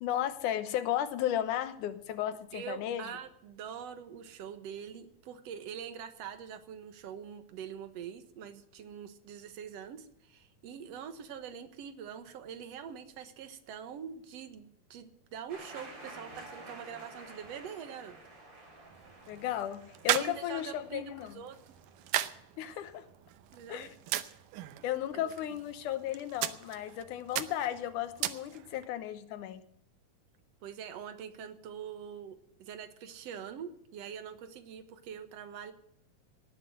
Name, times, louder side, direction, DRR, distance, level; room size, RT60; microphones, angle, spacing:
voice 1, 0.0-3.1 19.3-21.3 22.6-23.1 23.7-23.9 24.8-29.6, left 11 dB, 80° left, 11 dB, 2.5 m, -34 dB
voice 2, 2.5-18.2 20.1-21.1 21.3-21.6 23.5-23.9 25.1-25.3 30.6-35.7, right 8 dB, 60° right, 9 dB, 2.1 m, -44 dB
sound 1, 15.5-22.1, right 2 dB, 35° right, 4.7 m, -51 dB
sound 2, 18.8-28.9, right 13 dB, 85° right, 2.4 m, -38 dB
18.5 x 7.7 x 7.7 m, 0.73 s
omnidirectional pair, 3.6 m